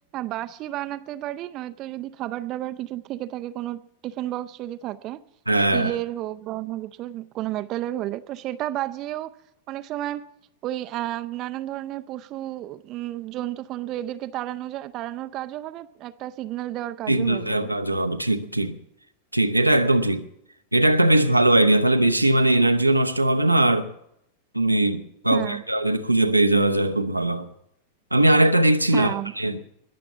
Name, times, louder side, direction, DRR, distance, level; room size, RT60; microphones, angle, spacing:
voice 1, 0.1-5.2 5.7-9.3 9.7-10.3 10.6-17.7 25.3-25.6 28.9-29.3, right 14 dB, 35° right, 0.5 m, -32 dB
voice 2, 5.5-5.9 17.1-18.8 19.3-20.2 20.7-23.9 24.5-27.5 28.1-29.6, right 1 dB, 85° right, 0.8 m, -20 dB
20.5 x 6.9 x 7.1 m
figure-of-eight pair, 90°, 0 cm